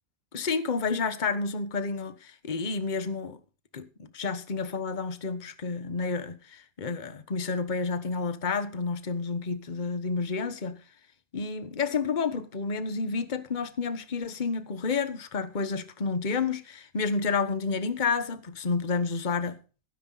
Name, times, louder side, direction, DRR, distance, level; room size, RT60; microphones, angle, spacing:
voice 1, 0.3-3.4 3.7-10.8 11.3-19.6, left 4 dB, 30° left, 1.3 m, -30 dB
16.5 x 9.8 x 4.1 m
omnidirectional pair, 1.7 m